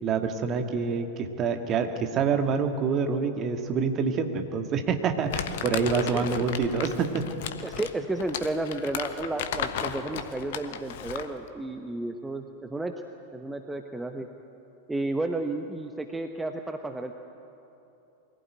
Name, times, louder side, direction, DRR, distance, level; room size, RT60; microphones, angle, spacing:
voice 1, 0.0-7.2, right 5 dB, 30° right, 5 dB, 1.9 m, -27 dB
Crumpling crinkling, 5.3-11.4, left 9 dB, 55° left, 1.2 m, -34 dB
voice 2, 6.1-6.5 7.6-12.9 13.3-14.3 14.9-17.1, right 2 dB, 10° right, 6 dB, 1.0 m, -32 dB
23.5 x 16.5 x 9.1 m, 2.9 s
figure-of-eight pair, 90°, 0 cm